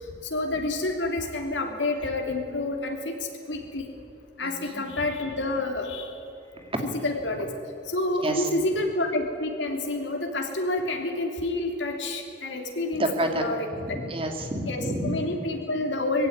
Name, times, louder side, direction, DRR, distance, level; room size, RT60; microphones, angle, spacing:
voice 1, 0.3-3.1 3.5-3.9 4.4-6.1 6.8-7.5 7.9-13.0 13.4-13.6 14.7-16.3, left 2 dB, 85° left, 3 dB, 3.4 m, -28 dB
voice 2, 4.4-4.8 6.5-7.0 8.2-8.5 12.9-13.4 13.7-15.2, right 1 dB, 30° right, 4 dB, 2.4 m, -29 dB
21.5 x 16.0 x 9.7 m, 2.6 s
head